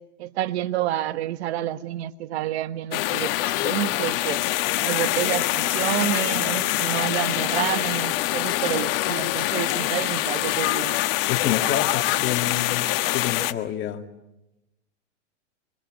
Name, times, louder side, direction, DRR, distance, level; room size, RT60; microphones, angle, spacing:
voice 1, 0.2-3.3 3.6-4.4 4.8-11.0, right 13 dB, 60° right, 1.4 m, -29 dB
sound 1, 2.9-13.5, left 16 dB, 50° left, 1.5 m, -24 dB
voice 2, 11.3-12.8 13.1-14.1, left 11 dB, 30° left, 2.4 m, -28 dB
26.5 x 25.5 x 8.0 m
hypercardioid pair, 105°, 37 cm